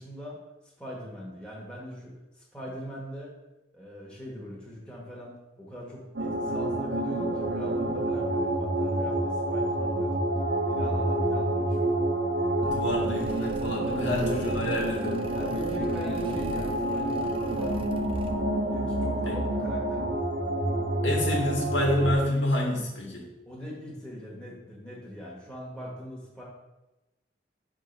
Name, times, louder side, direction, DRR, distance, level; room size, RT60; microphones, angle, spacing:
voice 1, 0.0-3.3 3.7-10.3 10.7-12.1 13.9-14.4 15.3-18.0 18.7-20.2 23.5-26.4, equal, 5° left, -5 dB, 1.2 m, -41 dB
sound 1, 6.2-22.1, right 1 dB, 90° right, 0.9 m, -28 dB
voice 2, 12.6-15.2 19.3-19.4 21.0-23.2, left 1 dB, 85° left, -1 dB, 1.7 m, -28 dB
sound 2, 12.6-18.7, right 1 dB, 30° right, 0.4 m, -41 dB
5.4 x 3.7 x 5.3 m, 1.0 s
head